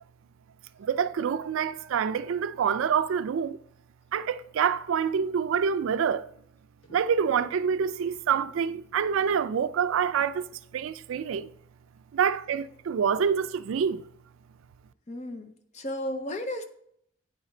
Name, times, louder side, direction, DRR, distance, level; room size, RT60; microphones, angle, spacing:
voice 1, 0.8-3.6 4.1-6.3 6.9-11.5 12.1-14.0, right 7 dB, 80° right, 0.3 m, -27 dB
sound 1, 5.6-6.6 6.8-8.4, right 9 dB, 65° left, 1.2 m, -55 dB
voice 2, 15.1-16.7, left 1 dB, 35° left, 0.6 m, -34 dB
9.3 x 4.2 x 3.8 m
head